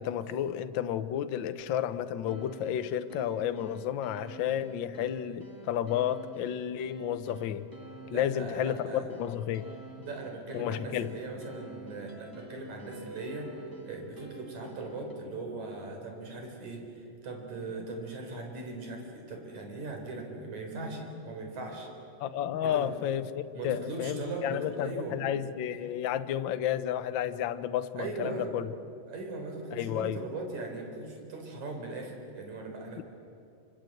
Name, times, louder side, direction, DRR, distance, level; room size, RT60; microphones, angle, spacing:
voice 1, 0.0-7.7 8.1-9.7 10.5-11.1 22.2-28.6 29.7-30.2 33.0-33.1, left 10 dB, 80° left, 11 dB, 1.0 m, -32 dB
sound 1, 2.3-15.1, right 3 dB, 10° right, 2.0 m, -48 dB
voice 2, 8.1-9.1 10.0-13.5 13.9-21.9 22.6-22.9 23.5-25.3 28.0-28.5 29.1-33.0, right 3 dB, 70° right, 2 dB, 5.5 m, -39 dB
27.5 x 26.5 x 7.9 m, 2.6 s
omnidirectional pair, 3.4 m